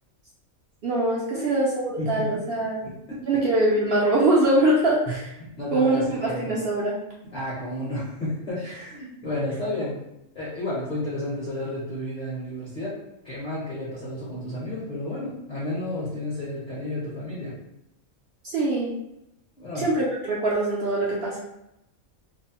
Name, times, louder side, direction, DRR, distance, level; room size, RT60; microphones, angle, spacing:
voice 1, 0.8-2.8 3.3-5.3 5.7-7.0 18.4-18.9 19.8-21.4, right 2 dB, 65° right, -5 dB, 0.6 m, -23 dB
voice 2, 2.0-2.4 2.8-2.9 5.1-5.2 5.6-6.5 7.3-10.0 10.3-13.0 13.2-17.5 19.6-19.9, left 1 dB, 40° left, -7 dB, 0.7 m, -31 dB
2.5 x 2.0 x 2.8 m, 0.84 s
omnidirectional pair, 1.4 m